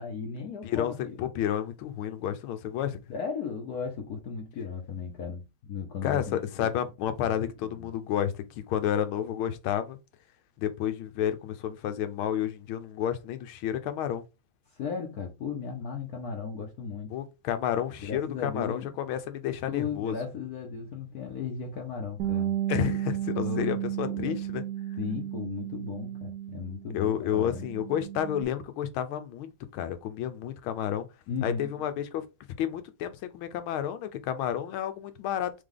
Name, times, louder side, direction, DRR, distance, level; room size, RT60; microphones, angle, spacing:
voice 1, 0.0-1.3 3.1-6.7 7.2-7.4 7.8-7.9 14.7-17.2 18.0-18.9 19.7-22.6 23.4-23.7 24.1-24.3 25.0-27.7 31.3-31.7, left 6 dB, 60° left, 1.0 m, -36 dB
voice 2, 0.6-3.0 6.0-10.0 10.6-14.2 17.1-20.2 22.7-24.6 26.9-31.1 31.4-32.2 32.6-35.5, left 10 dB, 80° left, 1.4 m, -31 dB
Bass guitar, 22.2-26.9 27.2-28.4, right 12 dB, 90° right, 0.8 m, -33 dB
3.6 x 3.4 x 3.7 m
omnidirectional pair, 2.3 m